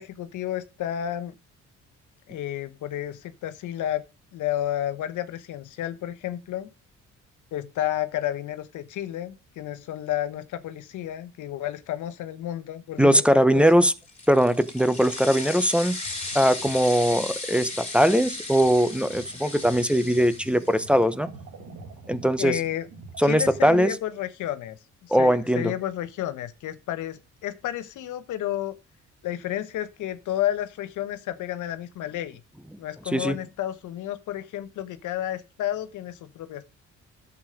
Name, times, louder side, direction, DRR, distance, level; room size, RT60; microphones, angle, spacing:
voice 1, 0.0-1.3 2.3-4.0 4.3-6.7 7.5-13.8 22.4-22.9 23.2-28.8 29.2-32.4 32.8-36.6, left 12 dB, 80° left, 1.1 m, -31 dB
voice 2, 13.0-13.9 14.3-16.0 16.3-21.3 22.1-22.6 23.2-23.9 25.1-25.7 33.1-33.4, equal, 5° right, 0.9 m, -20 dB
sound 1, 14.0-21.0, left 3 dB, 25° left, 3.2 m, -36 dB
sound 2, 16.0-23.9, right 3 dB, 80° right, 2.6 m, -46 dB
11.0 x 7.3 x 5.1 m
cardioid pair, 90°, 30 cm